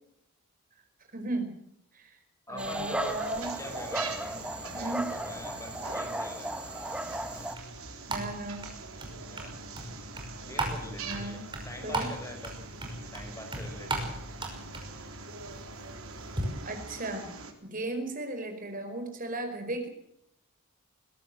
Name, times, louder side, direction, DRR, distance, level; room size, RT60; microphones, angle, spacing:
voice 1, 1.1-1.6 1.9-2.2 2.5-3.5 4.7-5.1 8.1-8.6 11.0-11.4 11.8-12.1 16.6-17.3 17.6-19.9, right 2 dB, 40° right, 6 dB, 5.0 m, -35 dB
voice 2, 2.5-6.5 9.3-9.6 10.4-12.6 13.1-14.2, left 1 dB, 15° left, 4 dB, 5.2 m, -44 dB
Dog, 2.6-7.5, right 1 dB, 5° right, 1.2 m, -35 dB
sound 1, 3.0-17.5, right 4 dB, 85° right, 3.9 m, -44 dB
sound 2, 6.8-16.4, right 2 dB, 25° right, 5.7 m, -38 dB
21.5 x 17.0 x 7.8 m, 0.73 s
head